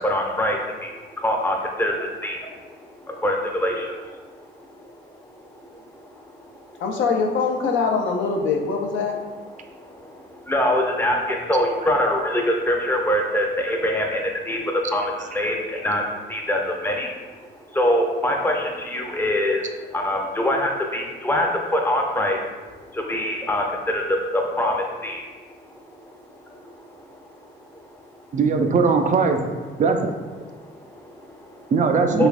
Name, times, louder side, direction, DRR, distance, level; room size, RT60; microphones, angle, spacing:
voice 1, 0.0-4.1 4.4-5.0 5.3-5.4 5.7-6.8 8.9-17.1 17.4-22.4 22.9-25.2 25.9-26.1 26.4-26.7 27.0-27.2 27.7-27.8 30.6-31.7 32.2-32.3, left 1 dB, 10° left, 1 dB, 0.5 m, -25 dB
voice 2, 6.8-9.2, left 4 dB, 75° left, 2 dB, 0.5 m, -23 dB
voice 3, 28.3-29.5 29.8-30.1 31.7-32.3, right 4 dB, 40° right, 5 dB, 0.4 m, -19 dB
3.3 x 3.1 x 2.4 m, 1.4 s
cardioid pair, 90°, 20 cm